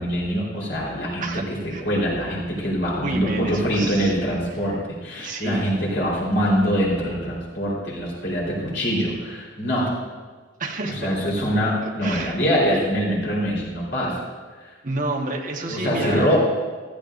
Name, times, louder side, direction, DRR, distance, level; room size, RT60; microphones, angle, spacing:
voice 1, 0.0-1.3 1.8-9.9 11.0-14.1 14.6-14.7 15.7-16.4, equal, 70° left, -5 dB, 4.0 m, -24 dB
voice 2, 1.2-1.8 3.0-4.1 4.6-4.7 5.2-5.7 10.6-11.1 12.0-12.4 14.8-16.3, right 2 dB, 45° right, 1 dB, 1.4 m, -29 dB
15.0 x 14.0 x 2.6 m, 1.4 s
head